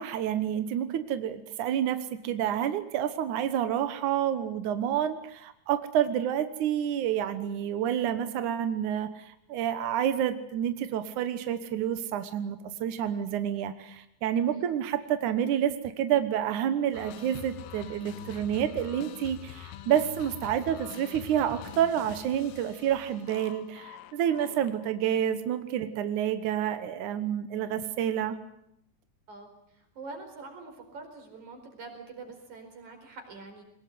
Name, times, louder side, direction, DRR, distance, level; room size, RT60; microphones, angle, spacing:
voice 1, 0.0-28.4, right 10 dB, 75° right, 10 dB, 1.8 m, -29 dB
sound 1, 16.9-25.0, left 11 dB, 85° left, 3.8 m, -45 dB
voice 2, 29.3-33.6, right 3 dB, 40° right, 5 dB, 5.7 m, -45 dB
23.0 x 20.0 x 9.5 m, 0.76 s
omnidirectional pair, 5.4 m